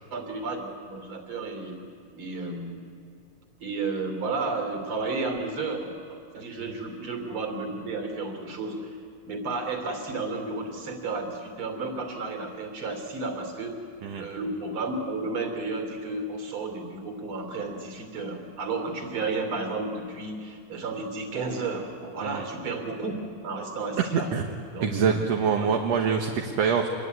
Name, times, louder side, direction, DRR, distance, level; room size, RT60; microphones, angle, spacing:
voice 1, 0.1-1.8 2.1-2.8 3.6-8.8 9.3-13.8 14.2-23.1 23.4-24.3 24.7-25.2 25.6-25.7, right 3 dB, 40° right, 5 dB, 3.8 m, -32 dB
voice 2, 24.1-24.5 24.8-26.9, right 6 dB, 60° right, 3 dB, 2.3 m, -25 dB
26.0 x 22.5 x 9.5 m, 2.4 s
omnidirectional pair, 3.7 m